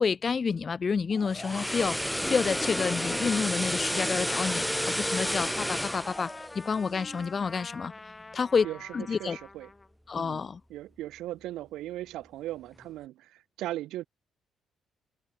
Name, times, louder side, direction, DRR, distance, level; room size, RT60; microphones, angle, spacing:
voice 1, 0.0-2.0 2.3-7.9 8.3-8.7 8.9-9.4 10.1-10.6, left 5 dB, 40° left, 0.7 m, -29 dB
sound 1, 1.1-7.3 7.6-7.8, equal, ahead, 0.8 m, -31 dB
Trumpet, 2.1-9.9, left 3 dB, 25° left, 2.6 m, -46 dB
voice 2, 8.6-9.7 10.2-14.0, right 15 dB, 90° right, 6.5 m, -38 dB
cardioid pair, 90°, 0 cm